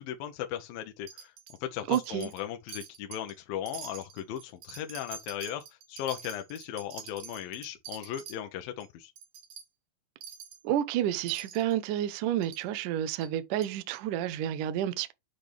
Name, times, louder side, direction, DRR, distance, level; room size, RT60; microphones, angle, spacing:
voice 1, 0.0-1.3 1.6-5.6 5.9-9.1, left 11 dB, 75° left, 2.1 m, -37 dB
Wind chime, 1.1-1.6 1.9-2.4 2.7-3.3 3.7-8.4 8.8-8.9 9.2-9.6 10.2-10.6 11.3-11.7 12.4-12.6 13.2-13.3 13.6-13.7, right 8 dB, 60° right, 2.5 m, -46 dB
voice 2, 1.9-2.3 10.6-15.1, right 11 dB, 85° right, 1.8 m, -30 dB
8.3 x 5.2 x 3.4 m
omnidirectional pair, 5.1 m